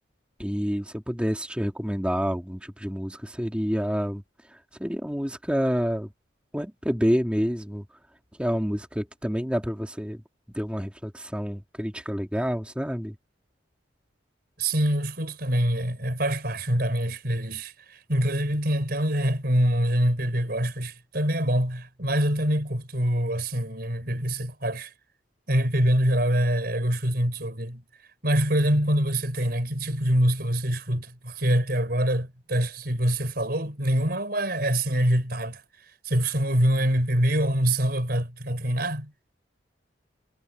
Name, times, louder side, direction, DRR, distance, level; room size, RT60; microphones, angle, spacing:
voice 1, 0.4-4.2 4.5-6.1 6.5-7.8 8.4-10.2 10.5-13.2, equal, 5° right, 2.7 m, -28 dB
voice 2, 14.6-24.9 25.5-27.8 28.2-35.6 36.0-39.1, right 1 dB, 50° right, 5.2 m, -25 dB
head